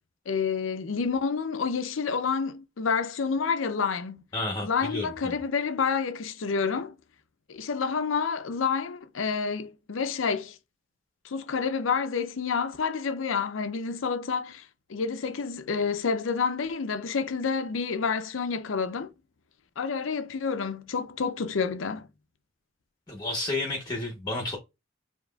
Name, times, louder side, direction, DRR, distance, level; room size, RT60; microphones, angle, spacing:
voice 1, 0.3-4.2 4.6-7.0 7.5-10.6 11.2-19.1 19.8-22.1, left 5 dB, 80° left, 0.6 m, -29 dB
voice 2, 4.3-5.3 23.1-24.6, left 2 dB, 20° left, 0.9 m, -31 dB
7.1 x 2.9 x 2.3 m
head